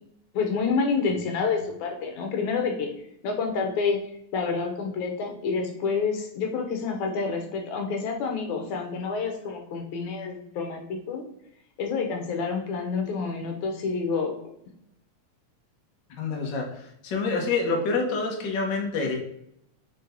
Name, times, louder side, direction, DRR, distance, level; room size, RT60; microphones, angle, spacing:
voice 1, 0.3-2.9 3.2-4.0 4.3-11.2 11.8-14.3, left 5 dB, 75° left, 3 dB, 2.4 m, -28 dB
voice 2, 16.2-19.1, left 4 dB, 50° left, 0 dB, 1.5 m, -27 dB
5.6 x 4.6 x 4.5 m, 0.76 s
omnidirectional pair, 3.4 m